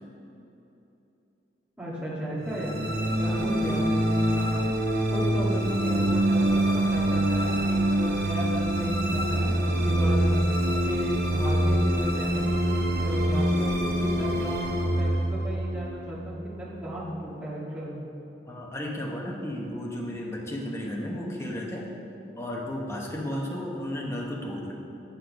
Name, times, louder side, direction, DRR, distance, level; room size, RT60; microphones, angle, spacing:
voice 1, 1.8-3.9 4.5-4.7 5.1-10.3 10.6-18.0, equal, 5° right, -8 dB, 1.7 m, -35 dB
sound 1, 2.5-16.8, right 1 dB, 55° right, 0.8 m, -25 dB
voice 2, 4.3-4.7 18.5-21.9 22.4-24.8, left 1 dB, 15° left, -2 dB, 0.9 m, -34 dB
8.1 x 6.5 x 5.2 m, 2.9 s
head